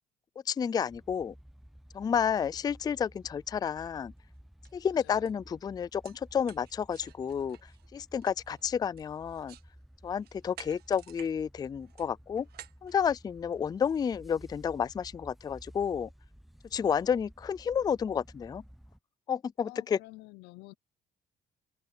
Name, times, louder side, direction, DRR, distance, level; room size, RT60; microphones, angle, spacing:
voice 1, 0.5-1.3 1.9-4.1 4.7-9.6 10.0-12.5 12.8-16.1 16.7-18.6 19.3-20.0, left 7 dB, 25° left, 0.4 m, -31 dB
sound 1, 0.9-19.0, equal, ahead, 0.8 m, -54 dB
sound 2, 4.2-4.3 4.6-4.8 5.3-5.4 5.8-9.7 10.1-11.3 11.6-13.7, right 12 dB, 70° right, 1.5 m, -53 dB
voice 2, 19.6-20.7, left 21 dB, 90° left, 0.7 m, -49 dB
cardioid pair, 110°, 17 cm